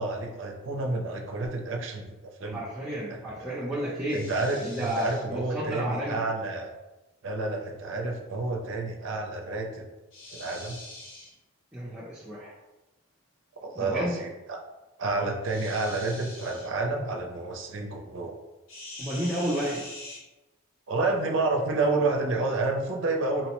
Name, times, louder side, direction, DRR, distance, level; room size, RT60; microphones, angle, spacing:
voice 1, 0.0-2.6 3.1-3.5 4.1-6.8 7.2-9.9 10.3-10.8 13.6-14.6 15.0-18.4 20.9-23.5, right 3 dB, 60° right, 2 dB, 0.5 m, -29 dB
voice 2, 2.5-4.2 4.6-6.2 11.7-12.5 13.8-14.1 19.0-19.8 22.3-22.4, right 1 dB, 5° right, -9 dB, 0.5 m, -31 dB
sound 1, 4.1-5.2 10.1-11.3 15.4-16.7 18.7-20.2, left 2 dB, 65° left, 0.9 m, -44 dB
4.1 x 2.1 x 2.9 m, 1.1 s
head